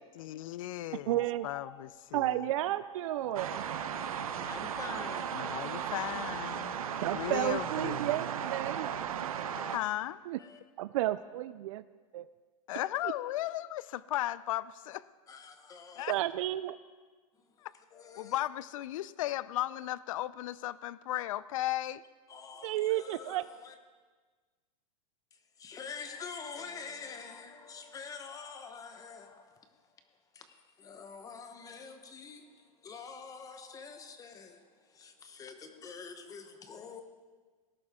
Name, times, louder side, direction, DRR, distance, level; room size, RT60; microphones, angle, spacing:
voice 1, 0.2-2.5 5.3-8.1 9.7-10.2 12.7-15.0 16.0-16.1 17.6-17.7 18.2-22.0, left 14 dB, 70° left, 19 dB, 0.5 m, -36 dB
sound 1, 1.1-1.7 2.2-2.5 3.0-5.6 6.1-7.8 8.3-8.9 9.4-9.7, left 6 dB, 40° left, 5.3 m, -48 dB
voice 2, 1.1-1.5 2.1-3.6 7.0-8.9 10.3-10.4 10.8-11.8 12.1-12.3 16.1-16.8 22.6-23.4, right 14 dB, 65° right, 14 dB, 0.4 m, -32 dB
sound 2, 3.3-9.8, right 9 dB, 90° right, 0.9 m, -36 dB
voice 3, 4.3-5.5 7.9-8.0 10.4-10.6 12.7-12.9 15.3-16.1 17.9-18.4 22.3-23.7 25.6-29.7 30.3-37.0, left 5 dB, 20° left, 7 dB, 1.0 m, -46 dB
18.5 x 11.5 x 3.6 m, 1.4 s
supercardioid pair, 140°, 18 cm